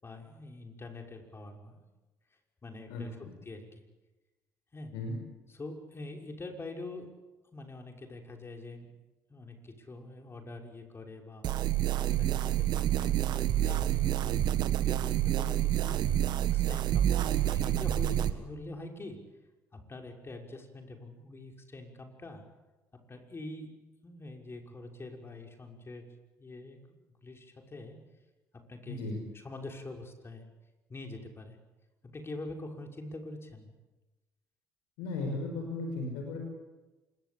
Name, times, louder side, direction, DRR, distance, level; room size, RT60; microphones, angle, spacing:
voice 1, 0.0-1.9 2.6-3.7 4.7-4.9 5.5-7.1 7.5-8.9 9.3-14.3 14.7-16.0 16.4-19.2 19.7-22.4 23.1-23.7 24.0-27.0 27.2-28.0 28.5-30.4 30.9-31.6 32.0-33.7, left 2 dB, 30° left, 2 dB, 6.0 m, -45 dB
sound 1, 11.4-18.3, right 12 dB, 65° right, 1.7 m, -28 dB
voice 2, 28.9-29.2 35.0-36.4, left 3 dB, 80° left, 2 dB, 5.9 m, -35 dB
26.0 x 22.5 x 8.7 m, 1.1 s
hypercardioid pair, 55°, 8 cm